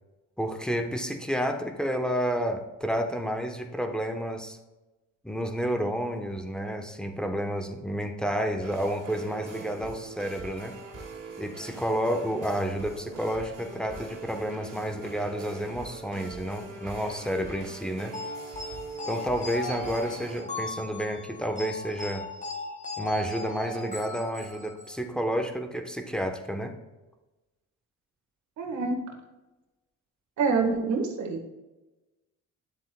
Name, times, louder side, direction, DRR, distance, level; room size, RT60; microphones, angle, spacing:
voice 1, 0.4-4.6 5.2-10.8 11.4-18.2 19.1-22.3 23.0-26.7, equal, 5° left, 5 dB, 0.9 m, -30 dB
sound 1, 8.6-20.4, right 4 dB, 50° right, 2.2 m, -42 dB
sound 2, 18.1-25.0, left 2 dB, 25° left, 1.4 m, -38 dB
voice 2, 28.6-28.9 30.4-31.4, right 4 dB, 70° right, 3 dB, 1.5 m, -26 dB
9.9 x 7.4 x 2.2 m, 1.1 s
cardioid pair, 90°, 30 cm